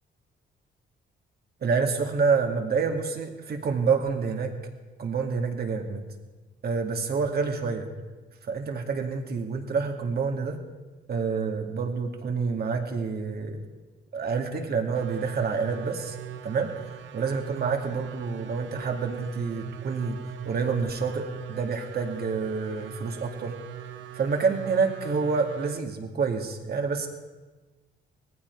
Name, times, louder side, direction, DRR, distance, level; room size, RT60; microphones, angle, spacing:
voice 1, 1.6-4.5 5.0-6.0 6.6-7.9 8.4-10.6 11.1-13.6 14.1-16.2 16.4-20.2 20.5-23.5 24.1-27.1, right 5 dB, 50° right, 4 dB, 2.2 m, -28 dB
sound 1, 14.9-25.8, right 11 dB, 70° right, 0.9 m, -42 dB
18.5 x 15.0 x 4.6 m, 1.3 s
cardioid pair, 90°, 20 cm